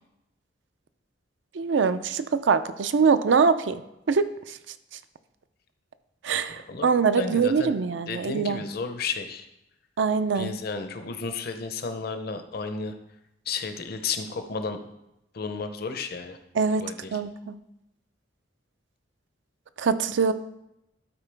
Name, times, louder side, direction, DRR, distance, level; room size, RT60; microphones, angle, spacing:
voice 1, 1.5-3.8 4.1-4.6 6.2-8.6 10.0-10.5 16.5-16.8 17.1-17.6 19.8-20.3, right 5 dB, 75° right, 12 dB, 0.4 m, -23 dB
voice 2, 7.2-7.7 8.1-9.5 10.3-12.9 13.5-14.8 15.3-16.4 16.8-17.2, left 4 dB, 55° left, 7 dB, 0.7 m, -32 dB
12.0 x 4.5 x 3.4 m, 0.87 s
head